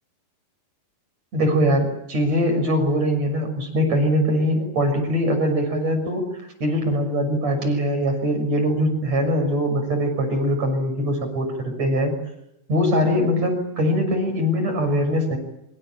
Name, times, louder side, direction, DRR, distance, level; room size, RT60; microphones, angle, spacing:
voice 1, 1.3-6.3 6.6-12.1 12.7-15.4, equal, 40° right, 5 dB, 7.5 m, -22 dB
26.0 x 25.0 x 8.8 m, 0.83 s
omnidirectional pair, 4.9 m